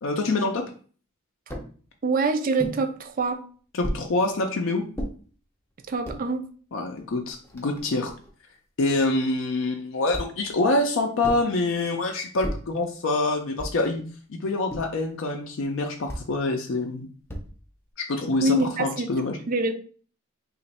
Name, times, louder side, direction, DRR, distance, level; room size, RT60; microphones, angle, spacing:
voice 1, 0.0-0.6 3.7-4.8 6.7-8.1 8.8-14.0 14.3-17.1 18.0-19.4, left 2 dB, 65° left, 3 dB, 0.4 m, -26 dB
sound 1, 1.5-1.7 2.6-2.8 3.8-4.1 4.9-5.1 5.9-6.2 7.0-7.1 7.3-8.3 10.1-10.5 11.2-11.5 12.4-12.7 13.6-13.9 14.7-15.0 16.1-16.3 17.3-17.7, equal, 10° left, 0.5 m, -34 dB
voice 2, 2.0-3.4 5.9-6.4 18.4-19.1 19.5-19.7, right 3 dB, 40° right, 8 dB, 0.4 m, -25 dB
3.0 x 2.5 x 4.0 m, 0.42 s
head